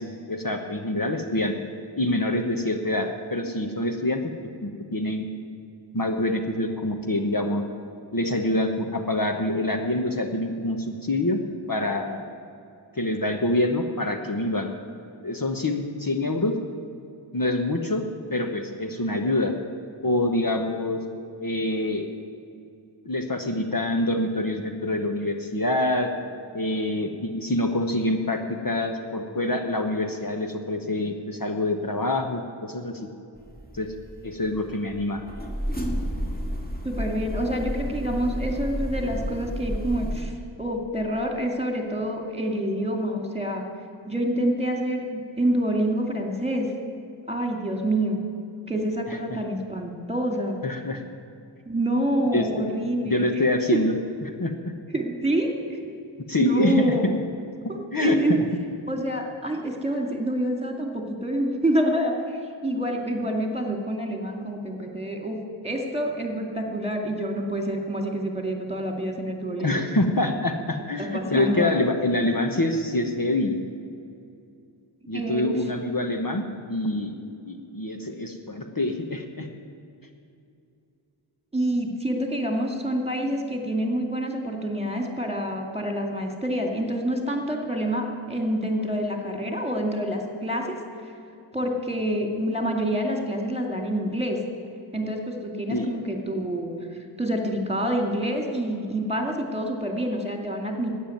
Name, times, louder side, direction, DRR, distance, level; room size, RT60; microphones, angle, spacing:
voice 1, 0.0-1.5 2.0-4.2 4.6-5.3 5.9-7.6 8.1-11.4 11.7-12.2 12.9-14.7 15.2-16.6 17.3-18.0 18.3-19.5 20.0-21.0 21.4-22.1 23.0-26.1 26.5-33.1 33.7-33.9 34.2-35.2 49.1-49.4 50.6-51.0 52.3-52.4 53.0-53.9 54.2-54.7 56.3-56.9 57.9-58.2 69.6-73.6 75.1-77.2 77.4-79.5 95.7-95.9, left 1 dB, 45° left, 4 dB, 1.1 m, -26 dB
sound 1, 33.4-40.2, equal, 20° left, 2.1 m, -31 dB
voice 2, 36.8-43.6 44.1-46.7 47.3-48.2 48.7-50.6 51.7-53.4 54.9-55.8 56.4-57.1 57.7-58.4 58.9-69.8 71.0-71.9 75.1-75.7 81.5-90.8 91.0-91.1 91.5-94.4 94.9-100.9, right 1 dB, 15° right, 3 dB, 2.3 m, -27 dB
12.5 x 8.7 x 9.2 m, 2.6 s
wide cardioid pair, 45°, 47 cm